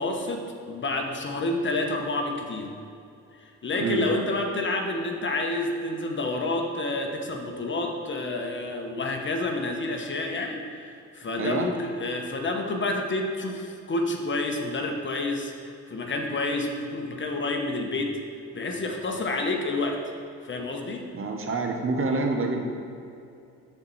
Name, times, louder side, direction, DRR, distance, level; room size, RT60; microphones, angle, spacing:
voice 1, 0.0-2.7 3.6-18.2 18.5-20.0 20.4-21.1, left 2 dB, 40° left, 3 dB, 1.2 m, -29 dB
voice 2, 11.4-11.7 21.1-22.6, right 3 dB, 45° right, 3 dB, 1.0 m, -27 dB
13.0 x 4.5 x 4.2 m, 2.6 s
cardioid pair, 90°, 30 cm